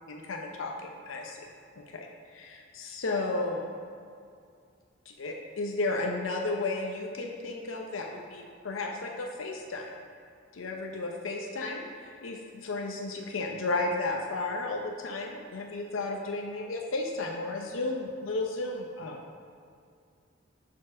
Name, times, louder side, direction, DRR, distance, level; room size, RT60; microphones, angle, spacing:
voice 1, 0.1-1.5 1.8-3.7 5.1-9.9 10.5-19.2, left 2 dB, 85° left, 1 dB, 0.6 m, -33 dB
6.2 x 4.5 x 6.1 m, 2.3 s
head